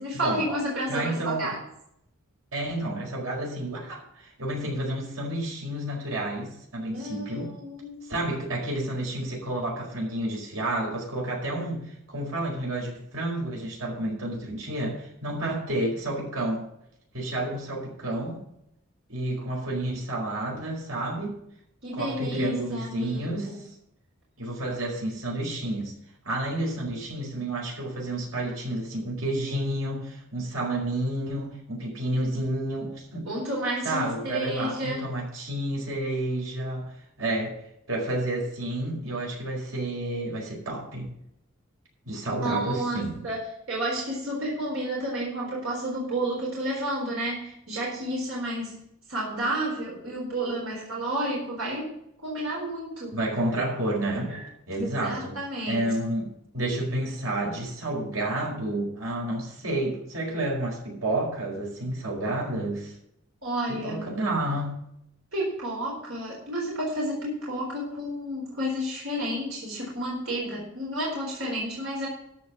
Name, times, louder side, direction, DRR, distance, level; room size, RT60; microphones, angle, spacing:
voice 1, 0.0-1.6 6.8-8.1 21.8-23.6 33.2-35.1 42.4-43.4 43.7-48.8 49.1-51.9 52.2-53.2 53.5-53.6 54.1-54.4 54.8-55.9 63.4-64.1 65.3-72.1, right 1 dB, 70° right, -4 dB, 4.2 m, -31 dB
voice 2, 0.9-1.5 2.5-7.5 8.1-16.7 17.1-18.4 19.1-21.4 21.9-23.5 24.4-25.9 26.2-33.3 33.8-36.9 37.2-37.5 37.9-41.1 42.0-43.2 53.1-54.4 54.7-55.4 55.6-62.9 63.7-64.8, right 1 dB, 85° right, -2 dB, 4.9 m, -30 dB
13.5 x 5.4 x 7.5 m, 0.76 s
head